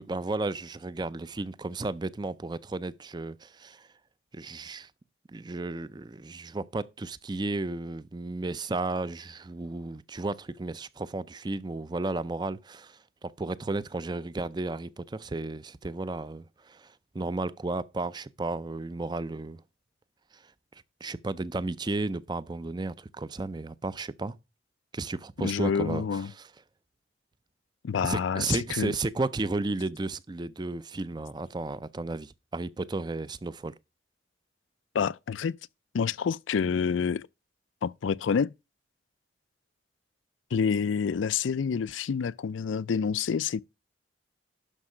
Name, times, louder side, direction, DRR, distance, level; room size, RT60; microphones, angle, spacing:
voice 1, 0.0-3.9 4.3-4.9 5.3-19.6 20.3-20.4 21.0-24.4 24.9-26.5 28.0-33.7, right 2 dB, 25° right, 0.4 m, -33 dB
voice 2, 25.4-26.3 27.8-28.9 34.9-35.6 35.9-37.3 37.8-38.5 40.5-43.6, left 6 dB, 85° left, 0.4 m, -28 dB
12.0 x 5.3 x 4.9 m
head